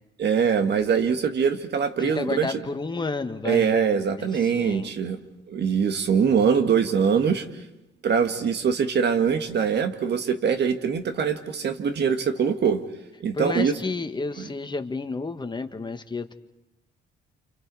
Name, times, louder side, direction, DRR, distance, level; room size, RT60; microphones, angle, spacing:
voice 1, 0.2-2.5 3.4-5.2 5.5-7.6 8.0-12.9 13.2-13.7 14.4-14.5, right 6 dB, 60° right, 8 dB, 1.9 m, -23 dB
voice 2, 2.0-3.7 4.2-4.9 13.3-16.3, left 3 dB, 20° left, 7 dB, 1.6 m, -31 dB
29.5 x 27.5 x 4.9 m, 0.95 s
cardioid pair, 90°, 20 cm